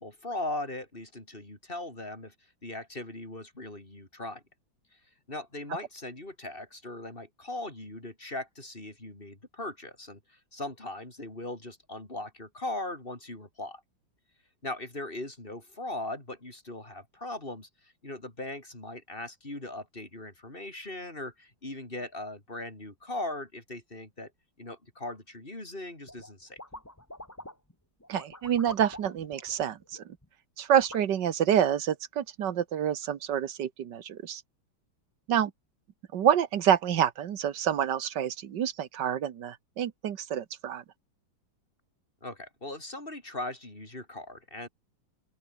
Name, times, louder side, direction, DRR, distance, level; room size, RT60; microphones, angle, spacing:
voice 1, 0.0-2.3 2.6-4.4 5.3-13.8 14.6-24.3 24.6-26.6 42.2-44.7, left 2 dB, 25° left, 5.4 m, -39 dB
sound 1, 26.1-26.3 26.6-27.7 28.0-30.2 30.8-31.0, left 1 dB, 10° left, 2.6 m, -46 dB
voice 2, 28.1-30.0 30.6-34.4 35.3-35.5 36.1-40.8, right 9 dB, 65° right, 1.8 m, -27 dB
open air
omnidirectional pair, 2.1 m